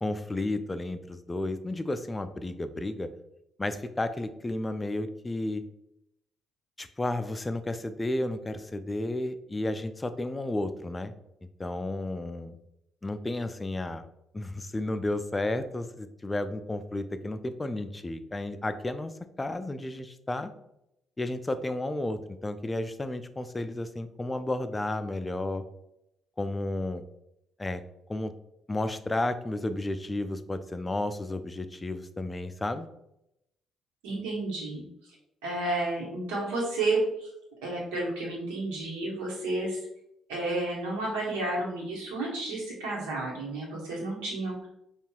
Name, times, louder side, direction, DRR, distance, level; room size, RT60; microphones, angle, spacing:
voice 1, 0.0-3.1 3.6-5.6 6.8-11.1 11.6-12.5 13.0-14.0 14.3-20.5 21.2-25.6 26.4-27.0 27.6-27.8 28.1-28.3 28.7-32.9, left 2 dB, 20° left, 10 dB, 0.4 m, -32 dB
voice 2, 34.0-34.8 35.4-37.3 37.6-39.8 40.3-44.7, right 2 dB, 75° right, -3 dB, 1.2 m, -31 dB
5.3 x 2.4 x 2.3 m, 0.83 s
hypercardioid pair, 45°, 0 cm